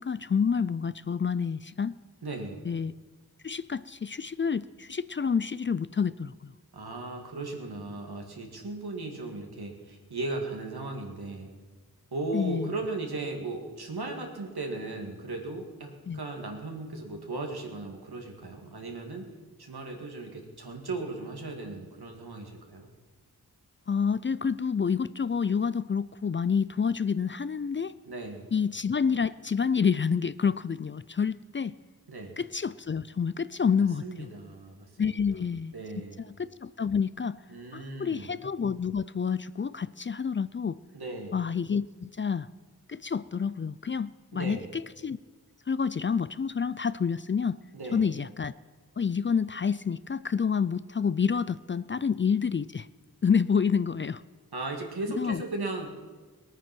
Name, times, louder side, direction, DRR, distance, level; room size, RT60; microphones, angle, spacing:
voice 1, 0.0-2.0 2.6-3.0 3.4-6.5 12.3-12.7 16.1-16.2 23.9-27.9 28.5-31.7 32.4-34.3 35.0-37.4 37.7-40.8 41.3-42.5 42.9-45.2 45.7-47.6 47.9-48.5 49.0-52.9 53.2-54.2 55.1-55.4, left 6 dB, 35° left, 17 dB, 0.4 m, -28 dB
voice 2, 2.2-2.6 6.7-11.5 12.1-19.3 19.6-22.9 28.0-28.5 32.1-32.4 34.0-35.2 35.7-36.2 37.5-38.3 40.9-41.3 44.3-44.7 47.7-48.0 54.5-55.9, right 2 dB, 80° right, 2 dB, 2.1 m, -37 dB
19.5 x 9.0 x 5.9 m, 1.4 s
cardioid pair, 45°, 37 cm